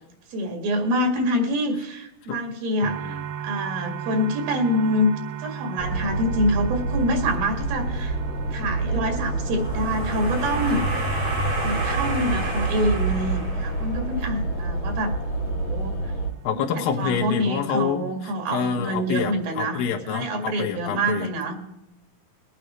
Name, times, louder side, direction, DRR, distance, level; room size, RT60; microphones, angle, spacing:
voice 1, 0.3-3.2 3.4-5.1 5.4-8.2 8.5-10.9 11.6-15.2 15.4-16.1 16.5-19.8 20.1-21.5, equal, 90° right, 3 dB, 3.9 m, -26 dB
voice 2, 2.8-3.2 16.4-21.3, left 7 dB, 85° left, 3 dB, 3.0 m, -27 dB
sound 1, 2.8-20.5, right 8 dB, 75° right, 2.0 m, -39 dB
sound 2, 5.8-16.3, right 2 dB, 55° left, 3.8 m, -27 dB
sound 3, 9.4-14.1, right 2 dB, 45° right, 6.6 m, -30 dB
22.0 x 9.0 x 3.1 m, 0.92 s
omnidirectional pair, 4.1 m